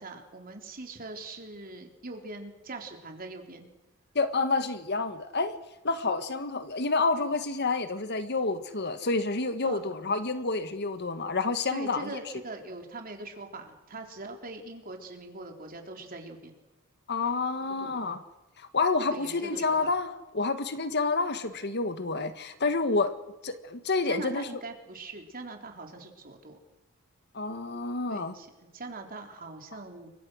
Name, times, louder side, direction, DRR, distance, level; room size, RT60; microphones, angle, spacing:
voice 1, 0.0-3.7 9.6-9.8 11.7-16.6 17.8-17.9 19.1-19.9 24.0-26.6 28.1-30.1, right 2 dB, 45° right, 3 dB, 3.8 m, -42 dB
voice 2, 4.1-5.6 5.8-12.1 17.1-18.2 18.6-23.1 23.4-24.5 27.3-28.3, left 3 dB, 55° left, 10 dB, 1.5 m, -29 dB
29.5 x 23.5 x 6.4 m, 1.1 s
head